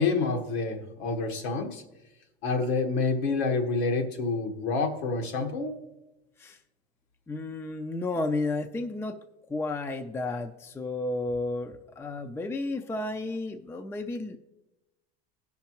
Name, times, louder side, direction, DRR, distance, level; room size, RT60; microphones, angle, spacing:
voice 1, 0.0-1.8 2.4-5.8, left 4 dB, 75° left, 4 dB, 1.5 m, -28 dB
voice 2, 7.3-9.2 9.5-14.4, left 2 dB, 10° left, 7 dB, 0.4 m, -32 dB
17.0 x 5.8 x 3.0 m, 0.98 s
hypercardioid pair, 95°, 32 cm